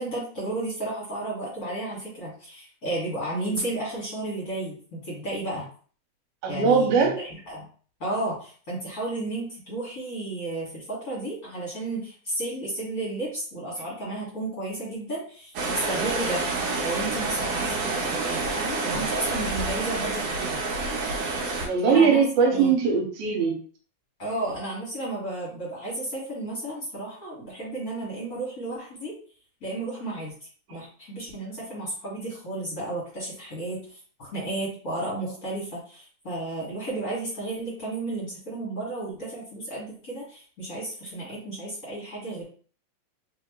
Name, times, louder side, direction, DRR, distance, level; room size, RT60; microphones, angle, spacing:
voice 1, 0.0-5.7 6.5-7.6 8.0-16.4 16.8-20.6 21.9-22.2 22.5-22.7 24.2-29.2 29.6-30.3 30.7-42.4, right 2 dB, 35° left, -7 dB, 1.7 m, -33 dB
voice 2, 6.4-7.2 21.6-23.6 30.7-30.8, right 5 dB, 85° right, 1 dB, 2.3 m, -21 dB
sound 1, 15.6-21.7, right 3 dB, 65° right, 1.9 m, -28 dB
4.2 x 3.3 x 3.0 m, 0.43 s
omnidirectional pair, 3.4 m